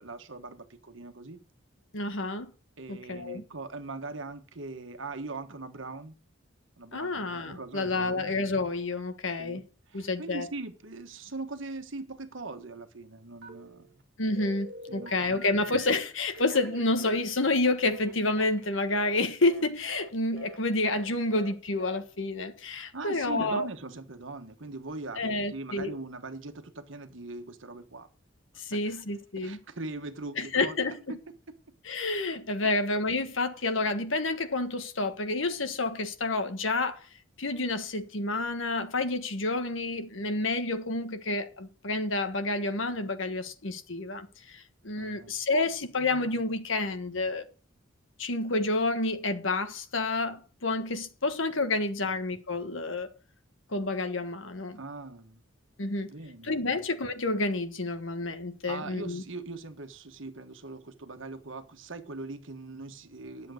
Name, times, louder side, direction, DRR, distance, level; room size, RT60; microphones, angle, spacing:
voice 1, 0.0-1.4 2.8-6.2 6.8-7.2 7.5-8.4 9.4-13.9 14.9-15.5 22.8-28.1 28.7-29.0 29.4-30.8 31.1-31.2 45.0-45.4 52.0-52.1 54.7-55.4 56.1-56.8 58.7-63.5, right 3 dB, 70° right, 1.3 m, -41 dB
voice 2, 1.9-2.5 2.9-3.4 6.9-9.6 9.9-10.5 14.2-23.7 25.2-26.0 28.6-29.6 30.4-31.0 31.8-37.1 37.4-47.4 48.2-53.1 53.7-54.8 55.8-56.1 56.4-59.2, left 2 dB, 70° left, 1.5 m, -29 dB
Telephone, 13.4-14.0 14.4-16.0 16.3-19.2 19.4-19.6 19.9-20.1 20.4-20.6 20.8-21.1 21.3-21.5 21.8-22.0, right 2 dB, 50° right, 1.9 m, -46 dB
10.5 x 7.5 x 6.4 m
head